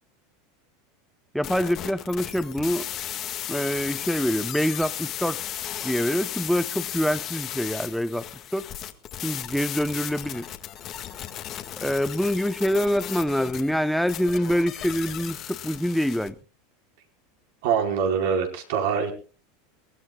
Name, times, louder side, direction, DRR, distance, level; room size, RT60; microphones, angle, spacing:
voice 1, 1.3-2.9 3.5-5.4 5.8-8.3 8.5-8.7 9.2-10.5 11.8-16.3, equal, ahead, 0.8 m, -25 dB
sound 1, 1.4-16.3, left 11 dB, 40° left, 1.8 m, -35 dB
voice 2, 17.6-19.1, right 7 dB, 70° right, 4.7 m, -24 dB
23.0 x 18.5 x 2.4 m
supercardioid pair, 125°, 0 cm